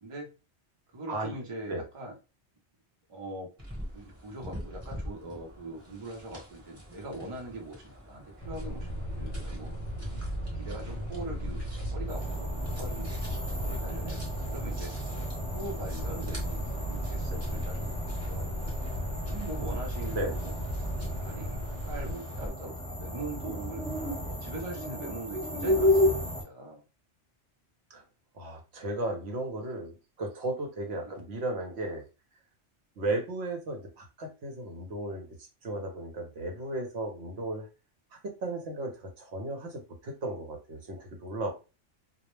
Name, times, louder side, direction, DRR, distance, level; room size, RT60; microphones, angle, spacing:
voice 1, 0.0-0.3 0.9-2.2 3.1-3.5 3.9-9.7 10.5-13.1 13.6-14.9 15.5-18.6 19.2-23.8 24.3-26.8 30.9-31.2, right 2 dB, 35° right, 0 dB, 0.5 m, -42 dB
sound 1, 3.6-22.5, equal, 15° right, 0.9 m, -47 dB
sound 2, 8.4-22.1, equal, 50° left, 0.5 m, -36 dB
sound 3, 12.1-26.4, left 1 dB, 5° left, 0.6 m, -33 dB
voice 2, 28.3-32.0 33.0-35.3 35.6-37.7 38.2-41.5, right 2 dB, 70° right, 3 dB, 0.9 m, -35 dB
2.2 x 2.0 x 3.0 m, 0.30 s
omnidirectional pair, 1.2 m